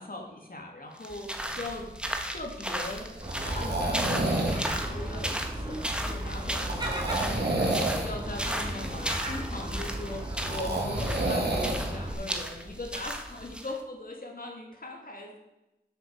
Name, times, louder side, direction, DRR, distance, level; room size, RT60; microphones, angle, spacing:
voice 1, 0.0-1.9 2.2-3.1 3.5-15.4, left 2 dB, 60° left, 1 dB, 2.5 m, -40 dB
sound 1, 1.0-13.8, equal, 5° right, 1.3 m, -36 dB
sound 2, 1.3-13.4, right 2 dB, 85° right, 2.1 m, -32 dB
Gull seagull, 3.2-12.1, right 1 dB, 25° right, 2.8 m, -35 dB
8.2 x 8.0 x 6.8 m, 0.94 s
wide cardioid pair, 55°, 17 cm